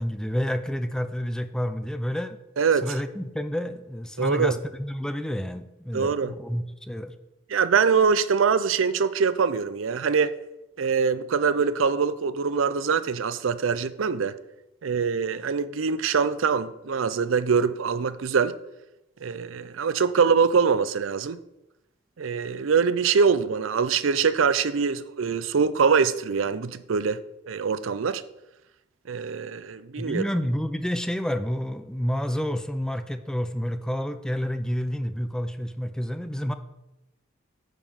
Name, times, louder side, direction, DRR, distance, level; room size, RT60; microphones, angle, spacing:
voice 1, 0.0-2.4 2.8-7.1 30.0-36.5, equal, 5° left, 0.4 m, -29 dB
voice 2, 2.6-2.9 4.2-4.6 5.9-6.3 7.5-10.3 10.8-14.3 14.8-18.6 19.2-21.4 22.2-27.2 27.5-28.2 29.1-30.2, right 5 dB, 80° right, 0.5 m, -23 dB
9.2 x 5.3 x 5.6 m
head